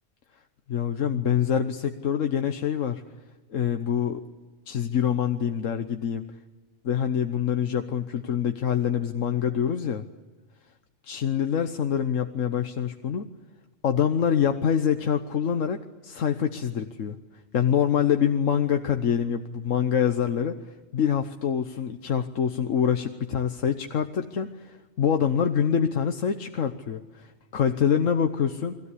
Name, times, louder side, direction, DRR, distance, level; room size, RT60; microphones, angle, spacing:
voice 1, 0.7-3.0 3.5-4.2 4.7-6.3 6.8-10.0 11.0-13.2 13.8-17.2 17.5-20.6 20.9-28.8, left 8 dB, 85° left, 7 dB, 1.4 m, -25 dB
29.5 x 21.0 x 8.4 m, 1.2 s
omnidirectional pair, 1.3 m